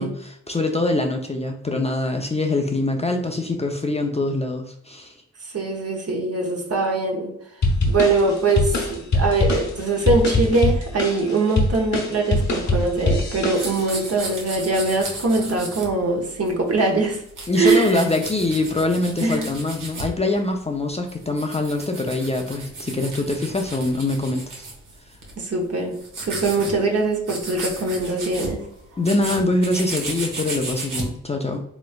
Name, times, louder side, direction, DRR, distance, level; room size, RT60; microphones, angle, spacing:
voice 1, 0.0-5.1 17.5-24.7 29.0-31.6, left 2 dB, 20° left, 0.5 m, -24 dB
voice 2, 5.5-7.3 7.9-17.2 17.6-18.0 19.2-19.5 25.4-28.6, right 3 dB, 50° right, 0.9 m, -22 dB
sound 1, 7.6-14.0, left 2 dB, 60° left, 1.0 m, -23 dB
sound 2, 13.0-16.7 17.0-20.2 20.8-25.4 25.7-26.7 27.0-27.1 27.3-31.1, right 2 dB, 80° right, 1.0 m, -34 dB
3.1 x 3.0 x 2.3 m
cardioid pair, 50°, 32 cm